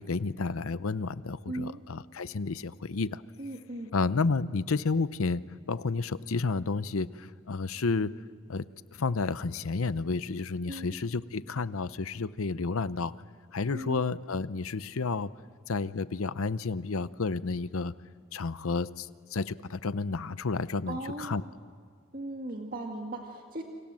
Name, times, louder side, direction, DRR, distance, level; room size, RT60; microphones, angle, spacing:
voice 1, 0.0-3.2 3.9-5.4 5.7-8.1 8.5-8.6 8.9-13.1 13.5-15.3 15.7-17.9 18.3-21.4, left 4 dB, 85° left, 15 dB, 0.7 m, -31 dB
voice 2, 1.5-1.8 3.4-3.9 10.7-11.0 13.7-14.0 20.9-21.5 22.1-23.6, right 1 dB, 40° right, 1 dB, 2.0 m, -38 dB
29.5 x 26.0 x 7.6 m, 2.1 s
head